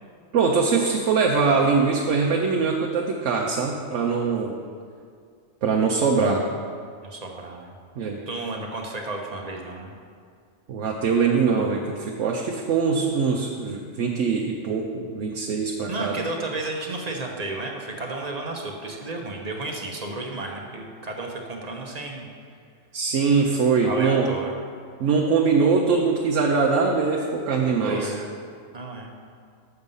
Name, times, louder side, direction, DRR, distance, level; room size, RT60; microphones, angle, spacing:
voice 1, 0.3-4.5 5.6-6.4 8.0-8.2 10.7-16.2 22.9-24.3 25.0-28.1, right 5 dB, 90° right, 0 dB, 1.1 m, -22 dB
voice 2, 7.0-7.7 8.3-9.9 15.9-22.3 23.8-24.6 27.8-28.3 28.7-29.1, right 2 dB, 35° right, 1 dB, 0.9 m, -32 dB
7.1 x 6.6 x 5.4 m, 2.2 s
omnidirectional pair, 1.2 m